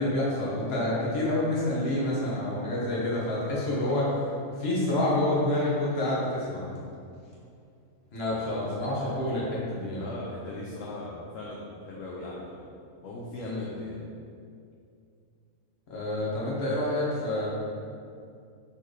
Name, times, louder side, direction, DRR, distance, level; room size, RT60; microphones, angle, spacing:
voice 1, 0.0-4.1 4.6-6.6 8.1-10.1 13.4-13.6 15.9-17.5, left 1 dB, 45° left, -6 dB, 1.2 m, -28 dB
voice 2, 10.0-12.7 13.0-14.0, left 2 dB, 70° left, -4 dB, 0.9 m, -39 dB
3.9 x 3.9 x 3.2 m, 2.4 s
omnidirectional pair, 1.5 m